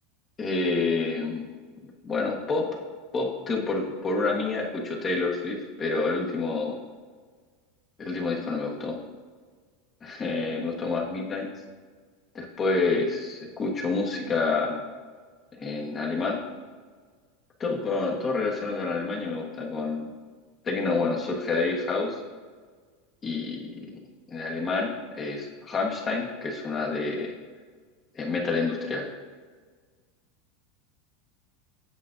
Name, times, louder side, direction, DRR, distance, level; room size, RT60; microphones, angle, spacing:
voice 1, 0.4-1.5 2.0-2.7 3.1-6.8 8.0-9.0 10.0-11.5 12.3-14.8 15.5-16.4 17.6-20.1 20.6-22.2 23.2-23.9 24.3-27.3 28.1-29.1, left 3 dB, 25° left, -1 dB, 1.2 m, -28 dB
8.4 x 7.2 x 2.5 m, 1.5 s
supercardioid pair, 135°, 0 cm